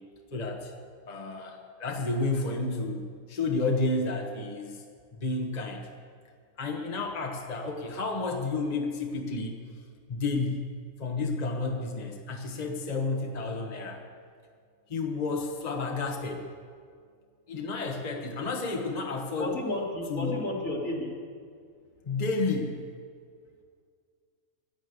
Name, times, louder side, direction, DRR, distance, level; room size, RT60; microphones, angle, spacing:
voice 1, 0.3-0.7 1.0-4.8 5.1-5.9 6.6-9.6 10.1-10.6 11.0-14.0 14.9-16.4 17.5-19.5 20.1-20.4 22.0-22.8, left 3 dB, 30° left, 2 dB, 1.2 m, -31 dB
voice 2, 19.4-21.2, left 2 dB, 65° left, -2 dB, 3.1 m, -32 dB
15.5 x 10.5 x 8.2 m, 2.1 s
omnidirectional pair, 1.5 m